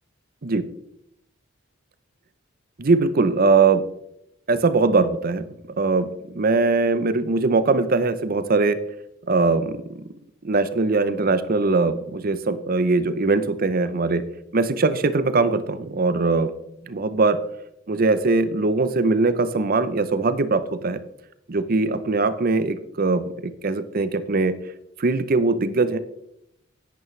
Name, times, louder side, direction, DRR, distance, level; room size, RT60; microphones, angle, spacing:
voice 1, 2.8-3.8 4.5-5.4 5.8-8.8 9.3-10.0 10.4-14.2 14.5-16.5 16.9-17.4 17.9-21.0 21.5-24.6 25.0-26.0, right 3 dB, 45° right, 12 dB, 0.6 m, -21 dB
10.5 x 9.2 x 3.2 m, 0.78 s
head